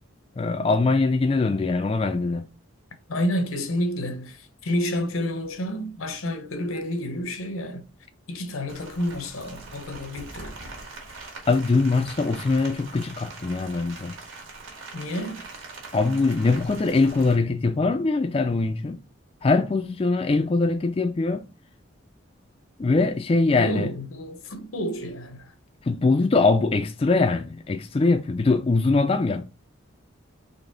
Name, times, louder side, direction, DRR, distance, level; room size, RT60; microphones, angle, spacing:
voice 1, 0.4-2.5 11.5-14.1 15.9-19.0 19.4-21.5 22.8-23.9 25.8-29.4, left 3 dB, 25° left, 0.3 m, -22 dB
voice 2, 3.1-7.9 8.3-10.5 14.9-15.4 23.5-25.5, equal, 90° left, 0.9 m, -29 dB
Rain, 8.7-17.4, right 3 dB, 75° right, 1.6 m, -42 dB
4.0 x 3.4 x 3.8 m
head